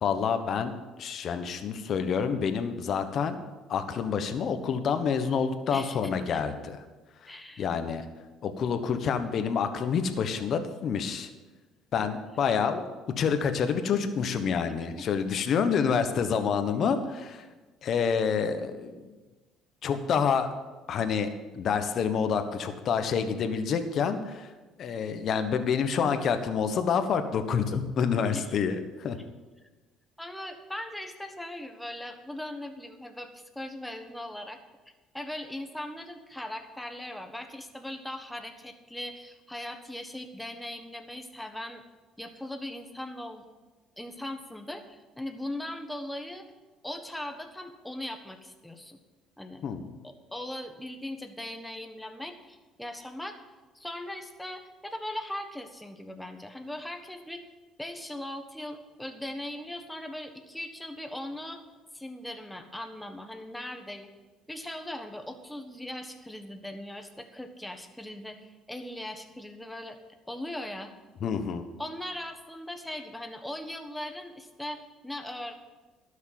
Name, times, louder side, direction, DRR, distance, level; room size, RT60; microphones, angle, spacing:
voice 1, 0.0-0.7 1.0-3.4 3.7-6.8 7.6-8.0 8.4-11.3 11.9-12.8 13.2-17.4 17.8-19.0 19.8-20.5 20.9-24.5 24.8-29.2 49.6-50.0 71.2-71.7, left 6 dB, 55° left, 9 dB, 1.2 m, -28 dB
voice 2, 5.7-6.4 7.3-7.7 15.0-15.1 28.3-28.5 30.2-34.6 35.1-41.8 42.2-43.4 44.0-46.5 46.8-49.0 49.4-49.6 50.0-53.4 53.7-57.4 57.8-61.6 61.9-64.1 64.5-70.0 70.3-70.9 71.8-75.5, left 1 dB, 5° left, 6 dB, 1.4 m, -39 dB
12.0 x 6.5 x 7.6 m, 1.2 s
supercardioid pair, 95°, 0 cm